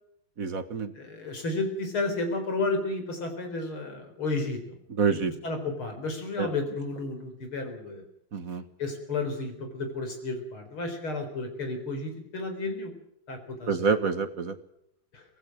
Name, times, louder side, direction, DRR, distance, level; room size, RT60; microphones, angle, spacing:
voice 1, 0.4-0.9 5.0-5.3 6.4-6.5 8.3-8.6 13.7-14.5, right 5 dB, 45° right, 10 dB, 1.6 m, -27 dB
voice 2, 1.0-4.6 5.1-5.2 5.4-8.1 8.8-12.9 13.3-13.9 15.1-15.2, left 3 dB, 85° left, 6 dB, 5.0 m, -32 dB
25.0 x 17.0 x 6.3 m, 0.76 s
omnidirectional pair, 2.3 m